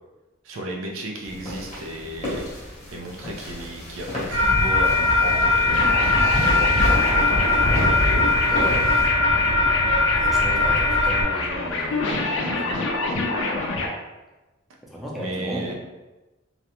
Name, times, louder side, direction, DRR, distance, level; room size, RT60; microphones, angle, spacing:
voice 1, 0.4-2.5 2.9-6.8 7.3-7.8 15.2-15.7, right 1 dB, 80° right, 0 dB, 0.5 m, -34 dB
sound 1, 1.2-9.1, left 1 dB, 35° left, 0.8 m, -35 dB
sound 2, 4.3-11.2, left 2 dB, 55° right, 1.1 m, -20 dB
sound 3, 5.7-13.9, left 3 dB, 65° left, 0.4 m, -27 dB
voice 2, 8.5-8.9 10.2-12.8 14.9-15.7, equal, ahead, -4 dB, 0.4 m, -34 dB
2.5 x 2.1 x 2.9 m, 1.1 s
head